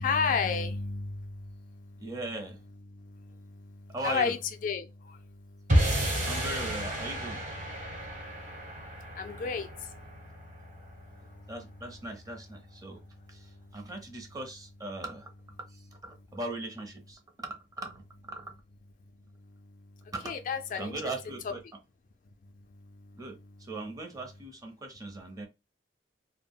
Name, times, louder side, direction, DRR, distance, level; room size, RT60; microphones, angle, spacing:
voice 1, 0.0-2.1 2.9-6.3 7.7-11.5 12.8-13.9 19.4-21.0 22.4-23.2, left 5 dB, 45° left, 0.3 m, -35 dB
voice 2, 2.0-2.6 3.9-4.3 6.3-7.4 11.5-13.0 13.3-15.3 15.7-18.4 20.1-20.3 20.7-21.6 23.2-25.5, right 2 dB, 20° right, 0.6 m, -39 dB
sound 1, 5.7-12.1, right 1 dB, 40° right, 1.0 m, -32 dB
2.2 x 2.0 x 3.5 m
head